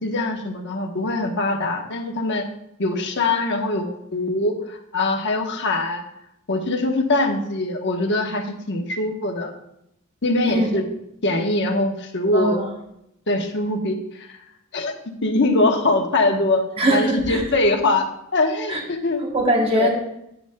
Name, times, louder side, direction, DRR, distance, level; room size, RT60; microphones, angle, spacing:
voice 1, 0.0-2.4 2.8-6.0 6.5-9.5 10.2-10.8 11.2-12.6 13.3-14.3 14.7-14.9 15.2-18.1 18.3-19.2 19.7-19.9, left 2 dB, 55° left, 3 dB, 1.1 m, -22 dB
voice 2, 12.3-12.6 16.8-17.4 18.7-18.8 19.3-19.9, right 1 dB, 25° right, 0 dB, 1.1 m, -21 dB
9.9 x 9.8 x 2.2 m, 0.80 s
head